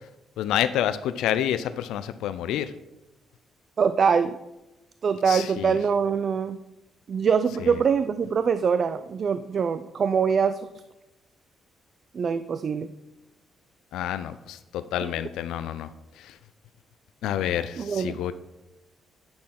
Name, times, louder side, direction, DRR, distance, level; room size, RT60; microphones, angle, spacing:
voice 1, 0.4-2.7 5.3-5.7 13.9-15.9 17.2-18.3, left 11 dB, 85° left, 12 dB, 0.3 m, -28 dB
voice 2, 3.8-4.4 5.0-6.6 7.1-10.8 12.1-12.9 15.0-15.2 17.7-18.2, right 6 dB, 50° right, 12 dB, 0.3 m, -24 dB
8.6 x 5.9 x 3.7 m, 0.99 s
cardioid pair, 90°, 0 cm